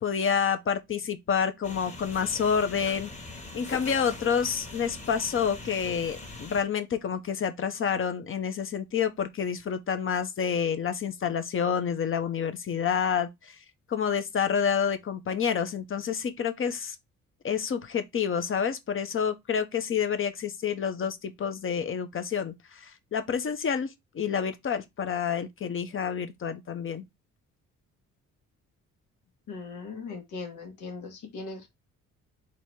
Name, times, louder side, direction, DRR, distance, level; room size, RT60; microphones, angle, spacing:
voice 1, 0.0-3.1 3.5-13.6 13.9-17.0 17.4-27.1, left 7 dB, 45° left, 0.8 m, -28 dB
sound 1, 1.6-6.6, left 2 dB, 25° left, 1.3 m, -42 dB
voice 2, 29.5-31.7, left 4 dB, 85° left, 1.6 m, -39 dB
4.0 x 2.9 x 4.6 m
cardioid pair, 90°, 30 cm